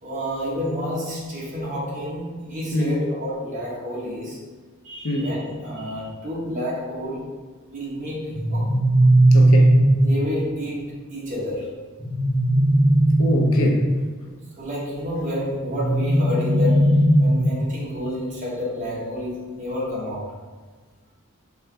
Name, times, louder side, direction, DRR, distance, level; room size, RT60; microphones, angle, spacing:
voice 1, 0.0-4.5 4.8-8.8 10.0-11.8 14.2-20.4, equal, 35° right, -6 dB, 1.0 m, -30 dB
sound 1, 8.3-10.3 12.0-14.0 15.7-17.7, right 1 dB, 10° left, 0.5 m, -17 dB
voice 2, 9.3-9.8 13.2-13.9, left 1 dB, 70° left, 1 dB, 0.5 m, -24 dB
4.3 x 2.4 x 3.3 m, 1.3 s
head